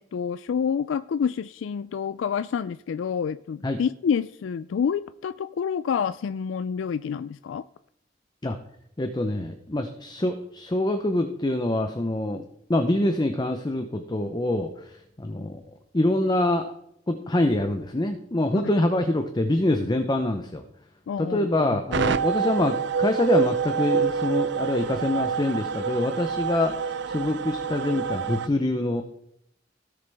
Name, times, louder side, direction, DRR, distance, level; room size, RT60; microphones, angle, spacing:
voice 1, 0.0-7.6 21.1-21.8, left 7 dB, 85° left, 0.3 m, -28 dB
voice 2, 9.0-12.4 12.7-15.6 15.9-16.7 17.1-20.6 21.2-29.0, left 1 dB, 25° left, 0.7 m, -25 dB
sound 1, 21.9-28.5, right 6 dB, 65° right, 0.5 m, -27 dB
17.0 x 6.7 x 3.5 m
head